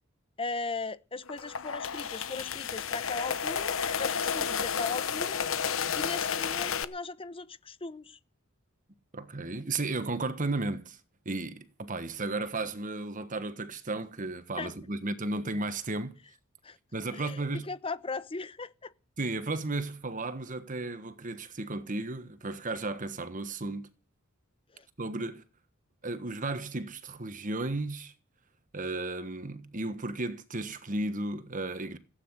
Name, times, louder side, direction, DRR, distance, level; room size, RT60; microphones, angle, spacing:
voice 1, 0.4-5.4 5.9-8.2 14.6-14.7 16.6-16.8 17.1-17.4 17.7-18.9 24.7-24.9, left 3 dB, 25° left, 0.9 m, -38 dB
sound 1, 1.3-6.8, left 7 dB, 75° left, 1.0 m, -31 dB
voice 2, 9.1-11.0 11.2-16.2 16.9-17.6 19.2-23.9 25.0-25.4 26.0-28.1 28.7-32.0, right 2 dB, 40° right, 1.4 m, -34 dB
16.5 x 9.4 x 7.9 m
head